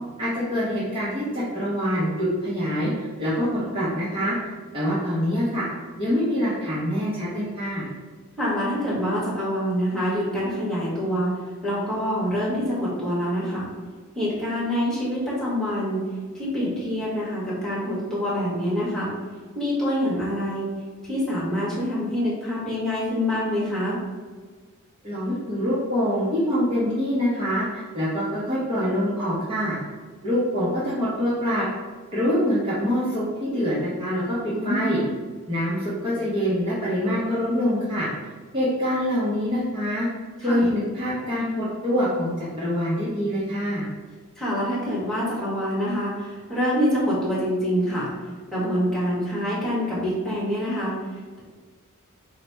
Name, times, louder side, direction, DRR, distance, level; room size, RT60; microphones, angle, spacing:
voice 1, 0.2-2.9 3.2-4.3 4.7-5.6 6.0-7.9 25.0-29.8 30.2-31.7 32.1-35.0 35.5-38.1 38.5-40.1 40.4-43.8, equal, 25° right, -9 dB, 0.8 m, -25 dB
voice 2, 8.4-11.3 11.6-13.6 14.1-16.0 16.3-19.1 19.5-20.7 21.1-24.0 34.5-35.0 40.4-40.7 44.4-48.1 48.5-50.9, equal, ahead, -9 dB, 1.3 m, -26 dB
4.0 x 2.1 x 4.5 m, 1.5 s
head